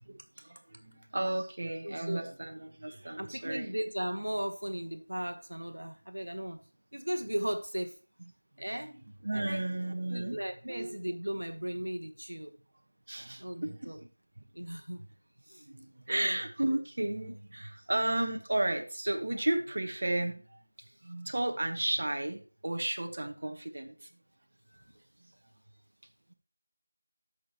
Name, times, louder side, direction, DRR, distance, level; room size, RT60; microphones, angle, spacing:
voice 1, 0.1-3.7 9.2-10.4 10.7-10.9 13.1-13.9 15.6-20.6 21.0-24.1, right 1 dB, 45° right, 4 dB, 1.3 m, -33 dB
voice 2, 1.8-2.3 3.2-6.6 6.9-8.0 8.6-8.9 9.3-9.6 10.1-12.5 13.4-14.0 14.5-15.1 15.5-15.7 16.1-16.4 20.8-20.9 24.7-24.8, equal, 80° right, 7 dB, 1.1 m, -36 dB
13.0 x 6.1 x 3.0 m, 0.37 s
figure-of-eight pair, 170°, 0 cm